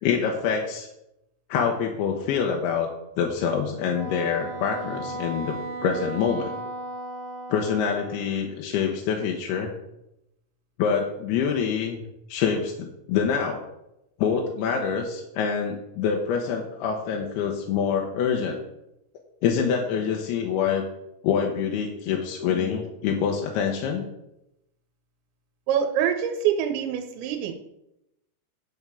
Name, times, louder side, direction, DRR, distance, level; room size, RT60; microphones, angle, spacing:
voice 1, 0.0-0.9 1.5-2.9 3.2-6.6 7.5-9.7 10.8-12.0 12.3-13.6 14.2-18.6 19.4-20.8 21.2-24.0, left 7 dB, 75° left, 2 dB, 2.5 m, -26 dB
Wind instrument woodwind instrument, 3.9-8.4, right 2 dB, 60° right, 3.1 m, -36 dB
voice 2, 25.7-27.5, right 9 dB, 90° right, 4 dB, 3.0 m, -25 dB
10.5 x 3.6 x 6.9 m, 0.86 s
omnidirectional pair, 5.1 m